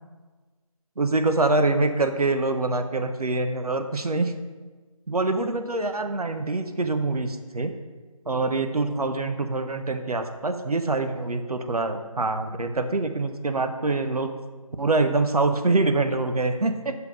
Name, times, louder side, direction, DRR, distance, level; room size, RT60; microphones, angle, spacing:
voice 1, 1.0-4.3 5.1-7.7 8.3-14.3 14.8-16.9, right 3 dB, 85° right, 7 dB, 0.9 m, -25 dB
5.9 x 5.6 x 6.2 m, 1.4 s
figure-of-eight pair, 170°, 19 cm